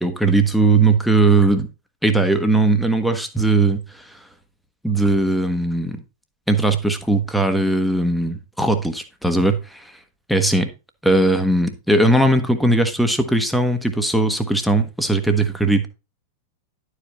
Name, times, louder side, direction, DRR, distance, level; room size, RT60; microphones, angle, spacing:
voice 1, 0.0-1.7 2.0-4.2 4.8-6.0 6.5-9.9 10.3-10.7 11.0-15.9, right 2 dB, ahead, 1.1 m, -19 dB
11.0 x 4.8 x 4.1 m
figure-of-eight pair, 90°, 0 cm